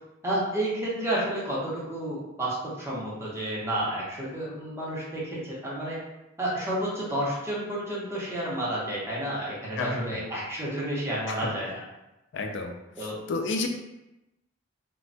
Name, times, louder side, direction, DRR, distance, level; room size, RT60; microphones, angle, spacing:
voice 1, 0.2-6.0 6.4-11.8 13.0-13.2, right 1 dB, 15° right, -6 dB, 0.8 m, -31 dB
voice 2, 9.8-10.2 11.4-11.5 12.3-13.7, left 3 dB, 60° left, 4 dB, 0.4 m, -31 dB
3.1 x 2.2 x 2.6 m, 0.95 s
head